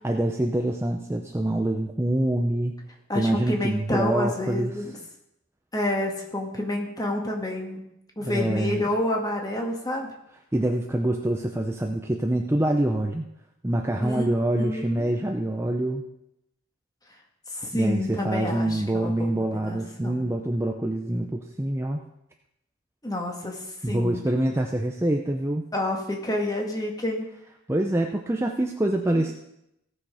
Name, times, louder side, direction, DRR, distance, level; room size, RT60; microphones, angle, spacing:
voice 1, 0.0-2.8 3.1-4.8 8.2-8.9 10.5-13.2 13.6-16.0 17.7-22.0 23.8-25.6 27.7-29.3, right 1 dB, 10° right, 2 dB, 0.5 m, -25 dB
voice 2, 3.1-4.9 5.7-7.9 8.2-10.1 14.0-15.2 17.5-20.3 23.0-24.2 25.7-27.3, left 1 dB, 15° left, 1 dB, 1.7 m, -29 dB
16.5 x 6.4 x 4.9 m, 0.83 s
head